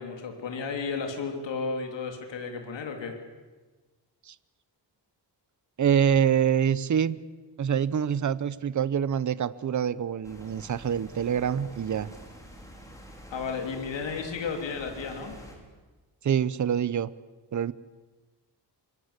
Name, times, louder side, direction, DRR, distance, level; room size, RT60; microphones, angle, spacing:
voice 1, 0.0-3.1 13.3-15.4, left 5 dB, 90° left, 3 dB, 3.3 m, -33 dB
voice 2, 5.8-7.2 7.6-12.1 16.2-17.1 17.5-17.7, right 8 dB, 45° right, 16 dB, 0.8 m, -25 dB
sound 1, 10.2-15.6, equal, 5° left, 4.9 m, -47 dB
26.0 x 23.0 x 8.2 m, 1.3 s
wide cardioid pair, 150°, 43 cm